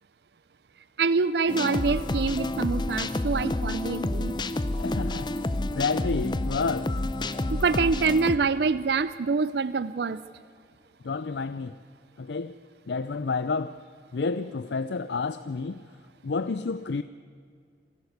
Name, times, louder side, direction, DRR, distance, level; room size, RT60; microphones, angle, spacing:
voice 1, 1.0-4.3 7.5-10.2, right 4 dB, 70° right, 15 dB, 0.5 m, -25 dB
sound 1, 1.5-8.4, left 2 dB, 25° left, 0.6 m, -29 dB
voice 2, 4.8-7.0 11.0-11.8 12.2-12.6 12.9-13.8 14.1-15.8 16.2-17.0, left 4 dB, 80° left, 13 dB, 0.5 m, -30 dB
27.5 x 12.0 x 8.0 m, 2.2 s
head